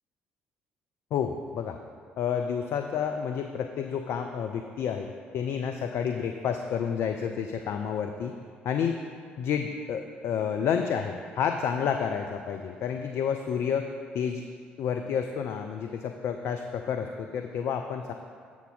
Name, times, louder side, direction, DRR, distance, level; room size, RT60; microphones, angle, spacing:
voice 1, 1.1-1.8 2.2-8.3 8.6-9.0 9.4-14.4 14.8-18.1, left 7 dB, 50° left, 5 dB, 0.4 m, -30 dB
7.2 x 6.9 x 3.8 m, 2.1 s
figure-of-eight pair, 50°, 5 cm